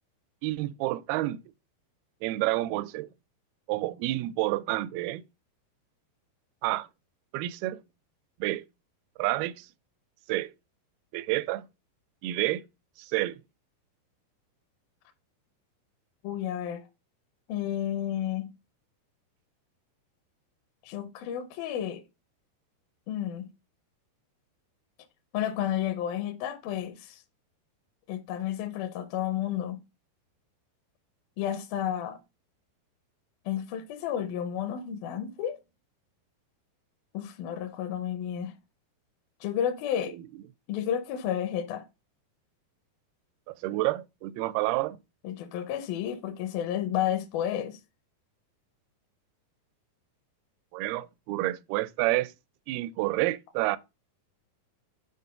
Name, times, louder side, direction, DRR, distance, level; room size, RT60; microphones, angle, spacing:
voice 1, 0.4-1.4 2.2-3.1 3.7-5.2 6.6-6.9 7.3-7.8 8.4-8.6 9.2-9.7 10.3-10.5 11.1-11.6 12.2-12.6 13.0-13.4 40.1-40.2 43.5-45.0 50.7-52.3 52.7-53.8, right 17 dB, 85° right, 2.3 m, -29 dB
voice 2, 16.2-16.8 17.5-18.5 20.8-22.0 23.1-23.5 25.3-27.2 28.1-29.8 31.4-32.2 33.5-35.6 37.1-38.5 39.4-40.2 40.7-41.8 45.2-47.8, left 10 dB, 75° left, 2.3 m, -31 dB
7.5 x 4.1 x 5.5 m
omnidirectional pair, 4.8 m